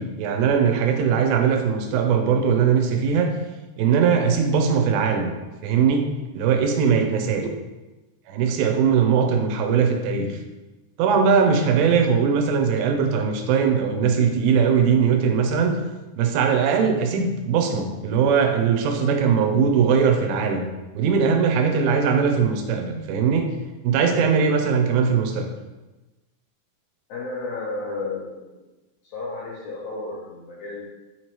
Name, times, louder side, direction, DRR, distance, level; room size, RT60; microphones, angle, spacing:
voice 1, 0.0-3.3 3.8-5.3 5.6-6.1 6.4-7.5 8.3-10.4 11.0-15.7 16.2-20.7 21.0-23.5 23.8-25.5, right 6 dB, 90° right, 4 dB, 2.4 m, -20 dB
voice 2, 27.1-28.6 29.0-30.8, left 3 dB, 75° left, -6 dB, 1.7 m, -33 dB
5.9 x 3.0 x 2.9 m, 1.1 s
omnidirectional pair, 4.1 m